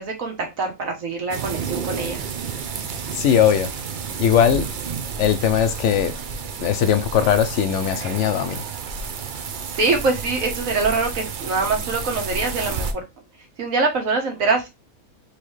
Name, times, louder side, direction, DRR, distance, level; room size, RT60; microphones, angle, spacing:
voice 1, 0.0-2.2 9.6-12.9 13.6-14.7, right 3 dB, 65° right, 1.5 m, -24 dB
sound 1, 1.3-12.9, right 6 dB, 85° right, 0.4 m, -31 dB
voice 2, 3.1-3.7 4.2-4.7 5.2-6.2 6.6-8.6, left 9 dB, 65° left, 0.8 m, -19 dB
4.0 x 3.2 x 3.1 m
omnidirectional pair, 1.5 m